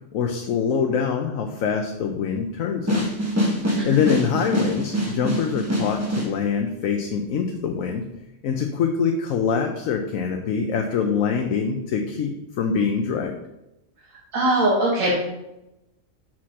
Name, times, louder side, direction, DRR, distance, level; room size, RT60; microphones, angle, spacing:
voice 1, 0.1-3.1 3.8-8.1 8.4-13.4, left 6 dB, 85° left, 3 dB, 1.1 m, -24 dB
sound 1, 2.9-6.3, equal, 10° right, 1.2 m, -25 dB
voice 2, 14.3-15.1, right 2 dB, 85° right, -4 dB, 1.8 m, -21 dB
6.0 x 4.3 x 6.2 m, 0.91 s
omnidirectional pair, 1.4 m